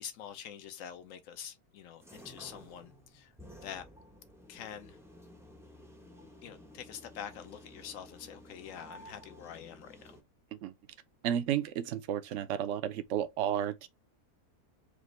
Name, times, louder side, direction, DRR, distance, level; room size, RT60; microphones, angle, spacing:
voice 1, 0.0-3.3 3.6-3.9 4.5-5.0 6.4-10.1, left 9 dB, 65° left, 1.1 m, -46 dB
sound 1, 2.0-10.2, equal, 5° right, 0.5 m, -53 dB
voice 2, 11.2-13.9, right 10 dB, 65° right, 0.8 m, -32 dB
5.1 x 2.5 x 3.1 m
omnidirectional pair, 1.6 m